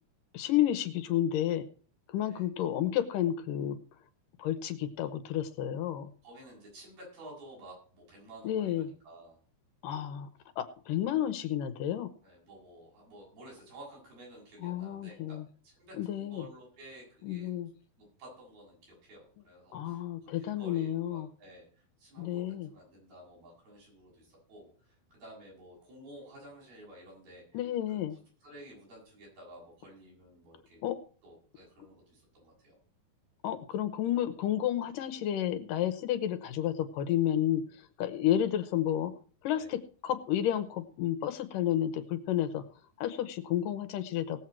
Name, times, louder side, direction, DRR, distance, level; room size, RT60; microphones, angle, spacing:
voice 1, 0.3-1.7 2.1-3.8 4.4-6.1 8.4-8.9 9.8-10.3 10.6-12.1 14.6-15.5 15.9-16.5 17.2-17.7 19.7-21.3 22.2-22.7 27.5-28.2 30.8-31.0 33.4-39.1 39.4-42.6 43.0-44.4, left 11 dB, 75° left, 10 dB, 2.3 m, -31 dB
voice 2, 6.2-9.4 12.2-17.5 18.0-27.4 27.9-28.0 28.4-30.8 31.2-32.8 39.6-39.7, right 1 dB, 80° right, -3 dB, 9.0 m, -52 dB
19.0 x 7.4 x 4.5 m, 0.41 s
omnidirectional pair, 4.2 m